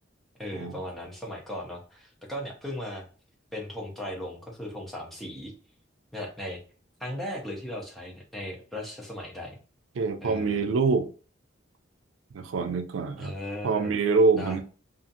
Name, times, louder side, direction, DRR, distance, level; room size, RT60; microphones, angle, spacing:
voice 1, 0.4-3.0 3.5-5.5 6.1-6.6 7.0-9.6 10.2-10.7 13.2-13.9 14.4-14.6, left 1 dB, ahead, 0.7 m, -37 dB
voice 2, 10.0-11.1 12.3-13.3 13.6-14.6, right 4 dB, 90° right, 0.4 m, -25 dB
2.7 x 2.4 x 2.6 m
head